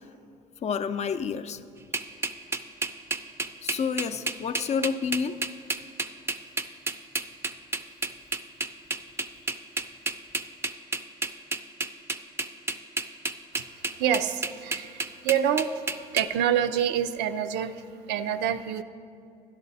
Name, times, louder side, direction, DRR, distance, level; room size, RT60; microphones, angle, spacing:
voice 1, 0.6-1.6 3.6-5.4, left 6 dB, 40° left, 11 dB, 0.5 m, -29 dB
sound 1, 1.9-16.3, right 3 dB, 15° right, 0.5 m, -30 dB
voice 2, 14.0-15.8 16.1-18.8, right 9 dB, 85° right, 10 dB, 0.5 m, -27 dB
12.0 x 11.0 x 4.0 m, 2.5 s
cardioid pair, 110°, 17 cm